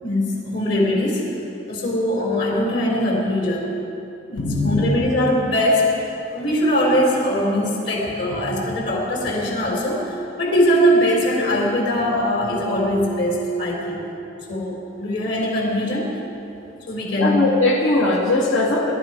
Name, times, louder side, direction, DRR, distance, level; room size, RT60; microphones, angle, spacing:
voice 1, 0.0-1.2 1.7-3.7 4.3-6.0 6.3-14.0 14.5-16.1 16.9-17.5, equal, 65° left, -3 dB, 3.8 m, -21 dB
voice 2, 4.4-4.9 8.3-8.5 17.2-18.9, left 2 dB, 85° left, -2 dB, 2.4 m, -20 dB
20.5 x 12.0 x 5.0 m, 2.8 s
head